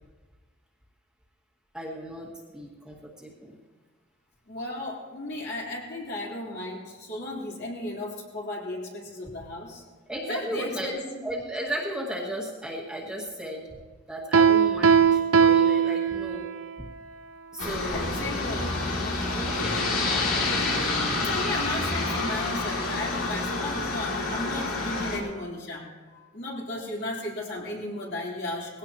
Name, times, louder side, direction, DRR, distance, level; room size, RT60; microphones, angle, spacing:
voice 1, 1.7-3.6 10.1-10.9 11.2-13.6 14.1-16.5 17.5-18.1 19.3-19.9 26.7-26.9, equal, 5° right, -4 dB, 1.9 m, -35 dB
voice 2, 4.5-9.8 10.3-11.2 17.9-18.6 21.2-25.9 26.1-28.8, left 2 dB, 55° left, -4 dB, 3.7 m, -35 dB
Piano, 14.3-16.6, right 6 dB, 90° right, 0.6 m, -20 dB
Aircraft, 17.6-25.2, left 2 dB, 75° left, 2.9 m, -28 dB
20.5 x 17.0 x 2.9 m, 1.4 s
head